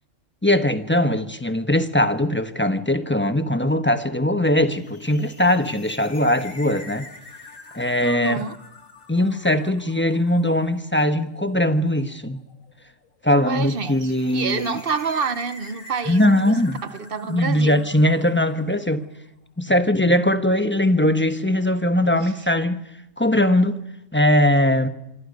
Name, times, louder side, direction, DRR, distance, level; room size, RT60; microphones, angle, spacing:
voice 1, 0.4-7.1 7.7-8.4 9.1-12.4 13.2-14.8 16.1-16.8 17.3-19.0 19.6-22.8 23.2-23.8 24.1-24.9, left 1 dB, 10° left, 1.0 m, -20 dB
sound 1, 4.7-19.1, left 3 dB, 85° left, 2.6 m, -46 dB
voice 2, 8.0-8.6 13.5-17.8 22.2-22.3, right 5 dB, 50° right, 1.1 m, -28 dB
26.0 x 25.5 x 5.3 m
omnidirectional pair, 1.3 m